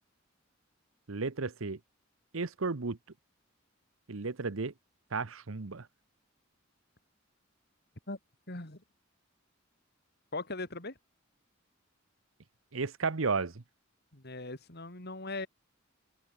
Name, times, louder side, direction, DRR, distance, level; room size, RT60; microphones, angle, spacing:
voice 1, 1.1-1.8 2.3-3.0 4.1-4.7 5.1-5.9 12.7-13.6, right 4 dB, 75° right, 1.0 m, -33 dB
voice 2, 8.5-8.8 10.3-10.9 14.1-15.5, left 2 dB, 50° left, 3.9 m, -39 dB
head